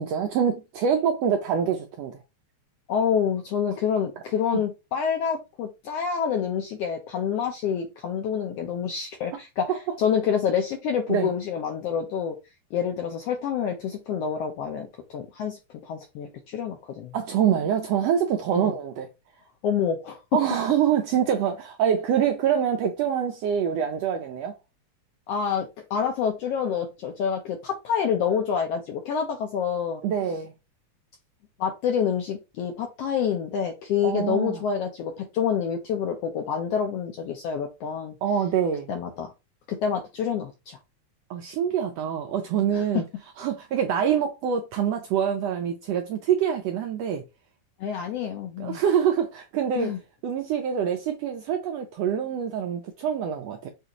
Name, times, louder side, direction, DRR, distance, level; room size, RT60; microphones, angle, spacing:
voice 1, 0.0-2.2 11.1-11.3 17.1-19.1 20.3-24.5 30.0-30.5 34.0-34.6 38.2-38.9 41.3-43.0 43.4-47.2 48.6-50.0 50.2-53.7, right 8 dB, 80° right, 1.5 m, -25 dB
voice 2, 2.9-9.7 10.0-12.3 12.7-17.1 18.6-18.7 19.6-20.2 25.3-30.0 31.6-38.1 38.9-39.3 39.7-40.8 42.7-43.0 47.8-48.8 49.8-50.0, left 7 dB, 80° left, 1.4 m, -27 dB
6.6 x 2.5 x 2.9 m
omnidirectional pair, 3.5 m